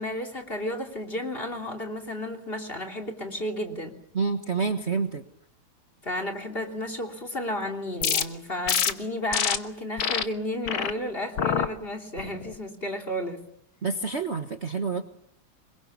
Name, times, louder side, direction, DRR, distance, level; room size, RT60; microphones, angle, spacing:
voice 1, 0.0-3.9 6.0-13.4, left 1 dB, 25° left, 7 dB, 3.4 m, -32 dB
voice 2, 4.1-5.2 13.8-15.0, right 5 dB, 35° right, 6 dB, 1.5 m, -28 dB
sound 1, 8.0-8.2 8.7-8.9 9.3-9.6 10.0-10.2 10.7-10.9 11.4-11.7 12.2-12.5, left 8 dB, 85° left, 2.1 m, -25 dB
26.5 x 23.5 x 7.2 m, 0.68 s
omnidirectional pair, 2.2 m